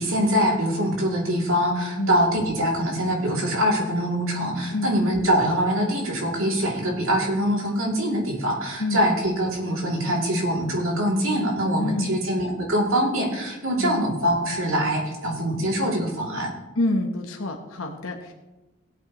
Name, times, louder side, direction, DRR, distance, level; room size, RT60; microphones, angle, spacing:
voice 1, 0.0-16.5, equal, 85° right, -1 dB, 3.0 m, -23 dB
voice 2, 11.8-12.3 13.8-14.0 16.8-18.3, left 2 dB, 90° left, 3 dB, 1.2 m, -27 dB
19.0 x 8.4 x 3.1 m, 1.1 s
head